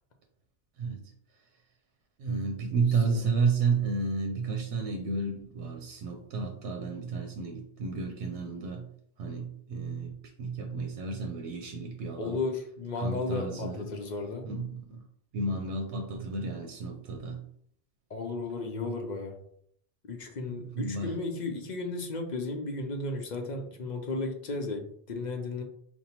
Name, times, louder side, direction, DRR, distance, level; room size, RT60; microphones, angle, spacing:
voice 1, 2.2-8.9 9.2-12.4 13.0-13.9 14.4-15.0 15.3-17.4 20.5-21.2, right 4 dB, 90° right, 3 dB, 0.9 m, -32 dB
voice 2, 2.9-3.3 12.2-14.5 18.1-19.4 20.1-25.6, left 3 dB, 50° left, 3 dB, 0.6 m, -34 dB
5.4 x 2.2 x 2.8 m, 0.66 s
omnidirectional pair, 1.1 m